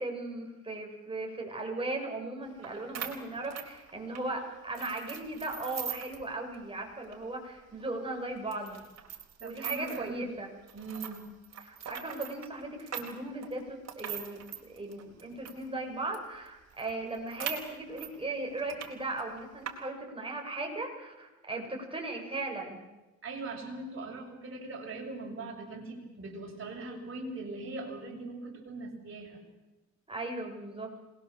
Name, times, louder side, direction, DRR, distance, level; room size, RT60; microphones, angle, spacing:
voice 1, 0.0-8.8 9.4-10.5 11.6-14.4 14.7-22.8 30.1-30.9, right 2 dB, 20° right, 1 dB, 7.0 m, -37 dB
sound 1, 2.6-2.7 2.9-4.3 4.7-6.2 6.5-6.6 7.0-7.1 7.7-7.8 8.5-10.1 10.7-15.6 16.1-16.2 16.5-16.6 16.8-18.1 18.6-18.9 19.2-19.7, right 9 dB, 60° right, 4.0 m, -41 dB
voice 2, 9.4-10.4 10.7-11.3 23.2-29.4, right 3 dB, 45° right, -1 dB, 6.7 m, -41 dB
26.5 x 20.5 x 7.3 m, 1.1 s
cardioid pair, 90°, 30 cm